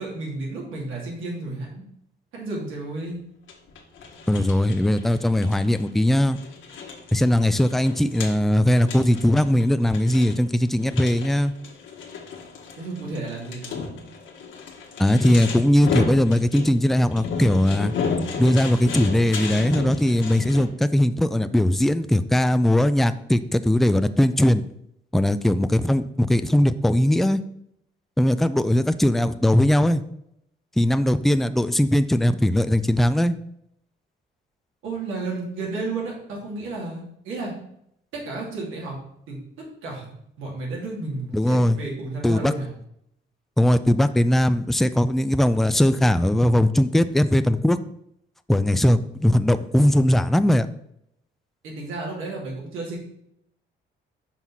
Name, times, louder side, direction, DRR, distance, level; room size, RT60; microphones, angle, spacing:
voice 1, 0.0-1.8 2.3-3.2 12.8-13.8 34.8-37.5 38.1-39.0 39.3-39.4 39.8-42.7 51.6-53.0, right 3 dB, 85° right, -2 dB, 2.6 m, -32 dB
sound 1, 3.5-20.7, left 5 dB, 75° left, 1.4 m, -33 dB
voice 2, 4.3-6.4 7.1-11.5 15.0-17.9 18.4-24.6 25.1-27.4 28.2-30.0 30.8-33.3 41.3-41.8 42.2-42.5 43.6-47.8 48.5-50.7, left 1 dB, ahead, 12 dB, 0.4 m, -19 dB
5.8 x 4.6 x 5.5 m, 0.74 s
cardioid pair, 90°, 20 cm